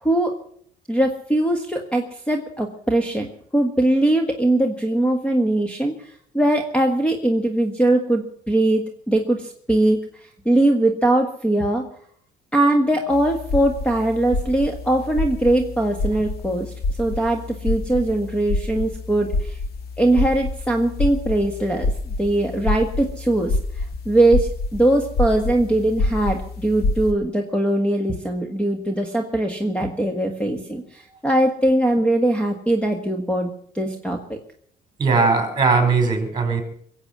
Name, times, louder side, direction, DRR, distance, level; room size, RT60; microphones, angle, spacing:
voice 1, 0.0-0.3 0.9-3.3 3.5-11.9 12.5-19.6 20.0-34.4, right 1 dB, 5° left, 5 dB, 1.7 m, -21 dB
sound 1, 13.1-27.1, left 2 dB, 65° left, 2.2 m, -27 dB
voice 2, 35.0-36.6, right 4 dB, 25° right, 5 dB, 4.9 m, -19 dB
22.5 x 8.2 x 7.4 m, 0.62 s
cardioid pair, 110°, 17 cm